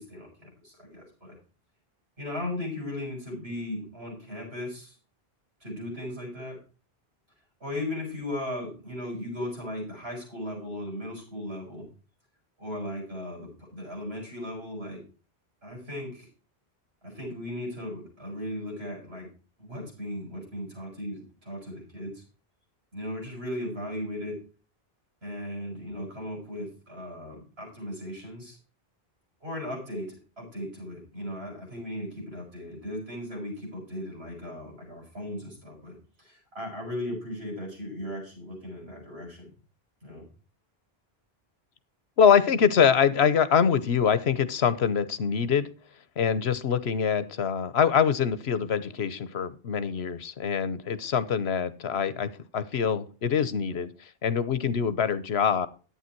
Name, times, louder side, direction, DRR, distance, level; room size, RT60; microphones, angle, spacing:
voice 1, 0.0-1.4 2.2-5.0 5.6-6.6 7.6-11.9 12.6-15.0 15.6-16.3 17.0-19.3 19.6-22.2 22.9-24.4 25.2-28.6 29.4-39.5 40.0-40.3, left 1 dB, 80° right, 0 dB, 6.9 m, -37 dB
voice 2, 42.2-45.7 46.2-55.7, left 7 dB, 90° left, 15 dB, 1.2 m, -24 dB
11.5 x 8.9 x 4.5 m, 0.36 s
omnidirectional pair, 1.0 m